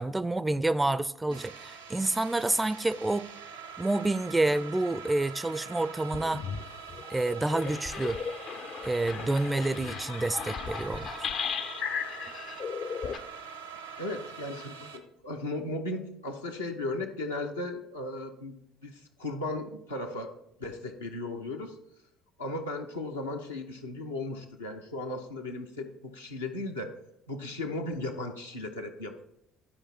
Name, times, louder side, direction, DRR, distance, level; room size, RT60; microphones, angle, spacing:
voice 1, 0.0-3.3 3.8-6.4 7.1-8.2 8.8-11.3, right 2 dB, 15° right, 0.4 m, -28 dB
sound 1, 1.3-15.0, right 6 dB, 80° right, 0.7 m, -44 dB
sound 2, 5.6-5.7 6.1-6.6 6.9-13.2, left 6 dB, 50° left, 0.5 m, -36 dB
voice 2, 14.0-18.5 18.8-20.3 20.6-21.8 22.4-26.9 27.3-29.2, left 2 dB, 85° left, 0.8 m, -36 dB
11.5 x 4.9 x 4.4 m
figure-of-eight pair, 55°, 0 cm